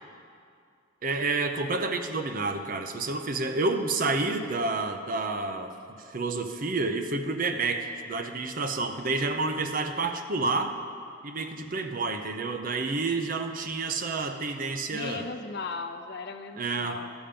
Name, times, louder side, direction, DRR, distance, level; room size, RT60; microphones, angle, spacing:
voice 1, 1.0-5.7 6.1-10.7 11.2-15.3 16.6-17.0, right 3 dB, 45° right, 6 dB, 0.6 m, -29 dB
voice 2, 14.9-17.1, left 4 dB, 55° left, 7 dB, 0.6 m, -37 dB
13.0 x 7.1 x 5.2 m, 2.4 s
head